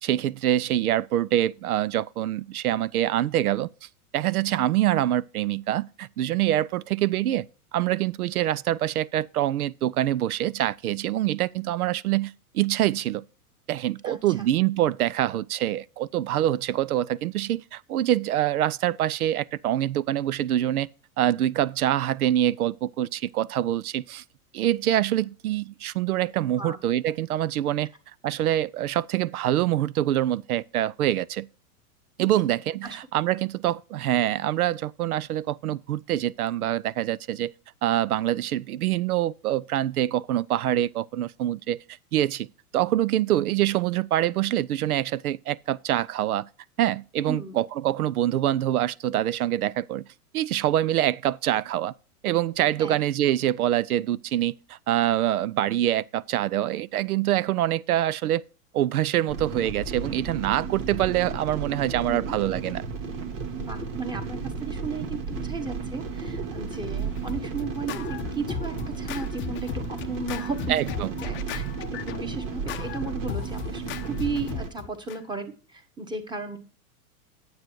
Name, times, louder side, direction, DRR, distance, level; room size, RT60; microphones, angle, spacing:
voice 1, 0.0-3.7 4.1-7.5 7.7-13.2 13.7-20.9 21.2-24.2 24.5-27.9 28.2-31.5 32.2-37.5 37.8-41.8 42.1-42.5 42.7-46.5 46.8-50.0 50.3-51.9 52.2-58.4 58.7-62.8 70.7-71.1, right 13 dB, 75° right, 0.6 m, -25 dB
voice 2, 14.0-14.5 26.6-26.8 32.2-32.4 32.8-33.0 47.3-47.6 52.8-53.0 62.1-62.3 63.6-70.7 71.2-71.6 72.0-76.6, right 3 dB, 10° right, 1.4 m, -35 dB
sound 1, 59.3-74.7, right 5 dB, 60° right, 1.9 m, -33 dB
Scratching (performance technique), 66.7-75.2, left 11 dB, 25° left, 0.6 m, -37 dB
9.4 x 7.9 x 4.6 m
hypercardioid pair, 100°, 44 cm